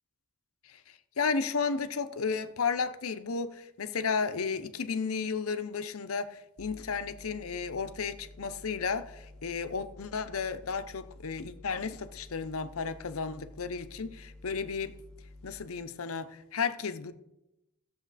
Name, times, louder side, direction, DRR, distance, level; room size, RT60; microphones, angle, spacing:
voice 1, 0.6-15.0 15.4-17.1, left 5 dB, 80° left, 0.7 m, -33 dB
sound 1, 6.6-15.7, left 2 dB, 5° left, 0.4 m, -51 dB
14.0 x 7.0 x 4.1 m
head